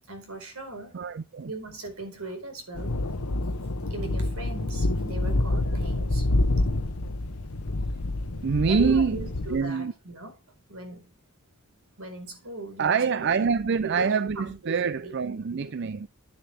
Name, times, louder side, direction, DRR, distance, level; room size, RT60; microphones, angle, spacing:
voice 1, 0.1-1.0 1.4-3.0 3.9-6.3 8.7-10.3 10.7-11.1 12.0-13.6 13.8-14.1 14.4-14.8 15.0-15.1, right 2 dB, 75° right, 4.4 m, -38 dB
voice 2, 0.9-1.5 8.4-9.9 12.8-16.1, right 5 dB, 50° right, 0.4 m, -25 dB
sound 1, 2.7-9.6, left 2 dB, 90° left, 1.1 m, -27 dB
10.0 x 9.7 x 3.4 m
head